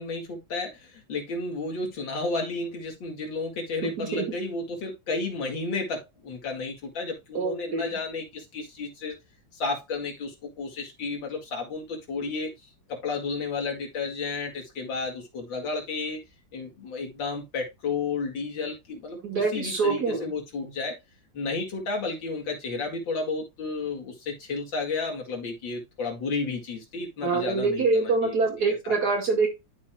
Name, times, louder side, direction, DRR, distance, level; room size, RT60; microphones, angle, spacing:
voice 1, 0.0-9.2 9.5-12.5 12.9-16.2 16.5-21.0 21.3-28.3 28.8-29.0, left 3 dB, 85° left, 2.7 m, -32 dB
voice 2, 3.8-4.2 7.3-7.9 19.2-20.3 27.2-29.5, right 4 dB, 55° right, 2.7 m, -25 dB
12.0 x 4.4 x 2.3 m
omnidirectional pair, 2.0 m